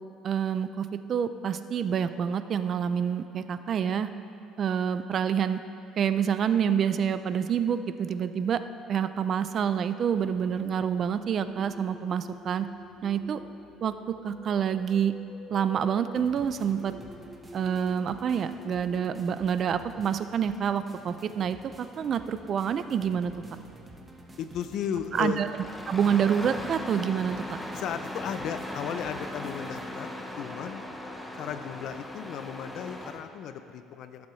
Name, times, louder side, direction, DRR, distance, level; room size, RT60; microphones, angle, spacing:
voice 1, 0.2-4.1 4.6-5.6 6.0-8.6 8.9-12.7 13.0-13.4 13.8-13.9 14.2-15.1 15.5-16.9 17.5-23.3 25.1-25.5 25.9-27.4, right 8 dB, 45° right, 11 dB, 0.4 m, -27 dB
sound 1, 10.1-21.2, left 2 dB, 30° left, 1.3 m, -49 dB
sound 2, 16.1-29.9, right 2 dB, 15° right, 1.0 m, -51 dB
voice 2, 24.4-25.4 27.7-30.1 30.4-30.8 31.4-34.3, left 8 dB, 60° left, 10 dB, 0.5 m, -35 dB
Engine starting, 25.1-33.2, left 1 dB, 5° left, 0.8 m, -38 dB
16.5 x 7.1 x 3.2 m, 2.7 s
cardioid pair, 120°, 0 cm